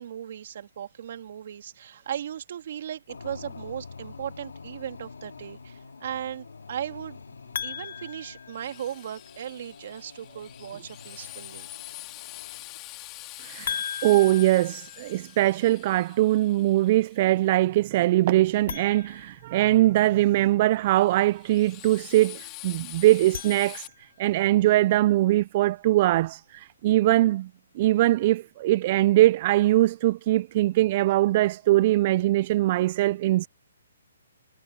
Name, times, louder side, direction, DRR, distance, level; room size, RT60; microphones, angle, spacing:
voice 1, 0.0-7.2 7.6-11.7, right 10 dB, 55° right, 2.5 m, -37 dB
sound 1, 3.1-13.0, left 4 dB, 85° left, 3.0 m, -46 dB
sound 2, 7.5-9.2 13.7-15.7 18.6-20.2 23.1-24.3, left 8 dB, 60° left, 2.6 m, -38 dB
Drill, 8.5-17.5 20.9-23.9, left 21 dB, 25° left, 3.0 m, -44 dB
voice 2, 13.4-27.5 27.8-33.5, right 16 dB, 40° right, 0.4 m, -22 dB
hypercardioid pair, 150°, 0 cm